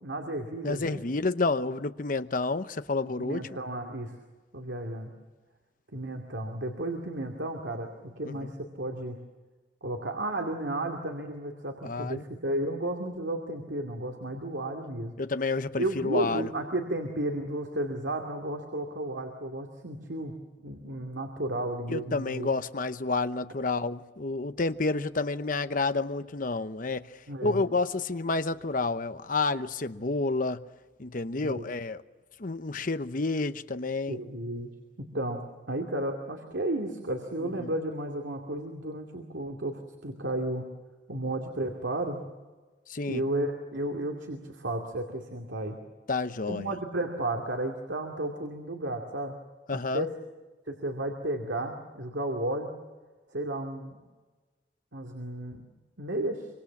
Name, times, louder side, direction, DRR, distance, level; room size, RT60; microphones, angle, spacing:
voice 1, 0.0-1.0 3.0-4.1 4.5-5.1 5.9-9.2 9.8-15.1 15.8-20.3 20.6-22.5 27.3-27.6 31.4-31.6 34.1-34.7 35.0-40.7 41.1-42.2 43.1-45.8 46.5-49.3 49.7-50.1 50.7-52.7 53.3-54.0 54.9-55.6 56.0-56.5, right 1 dB, 85° right, 2.5 m, -33 dB
voice 2, 0.6-3.4 8.2-8.5 11.8-12.2 15.2-16.5 21.9-27.1 27.4-30.6 31.0-32.0 32.4-34.2 37.4-37.7 42.9-43.2 46.1-46.7 49.7-50.1, left 3 dB, 50° left, 0.9 m, -30 dB
25.5 x 25.0 x 7.2 m
head